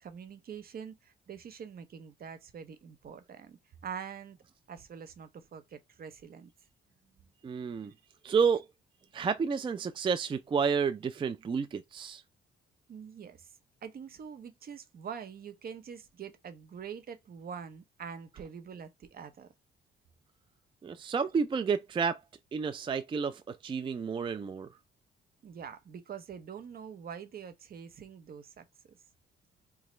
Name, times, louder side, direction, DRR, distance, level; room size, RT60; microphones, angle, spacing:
voice 1, 0.0-4.4 4.7-6.5 12.9-13.5 13.8-19.5 25.4-29.0, right 7 dB, 50° right, 0.7 m, -45 dB
voice 2, 7.4-7.9 8.2-8.7 9.1-12.2 20.8-22.2 22.5-24.7, right 6 dB, 25° right, 0.3 m, -30 dB
3.0 x 2.3 x 4.2 m
cardioid pair, 90°, 20 cm